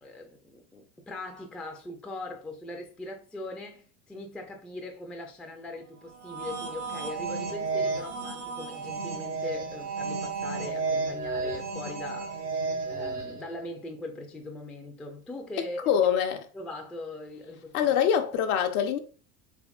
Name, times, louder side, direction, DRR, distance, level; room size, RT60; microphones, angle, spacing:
voice 1, 0.0-12.3 12.9-16.1 16.5-17.9, left 2 dB, ahead, 0.4 m, -40 dB
sound 1, 6.1-13.5, right 4 dB, 90° right, 1.4 m, -32 dB
voice 2, 15.6-16.4 17.7-19.0, left 8 dB, 65° left, 0.8 m, -25 dB
3.5 x 3.4 x 2.3 m
hypercardioid pair, 100°, 46 cm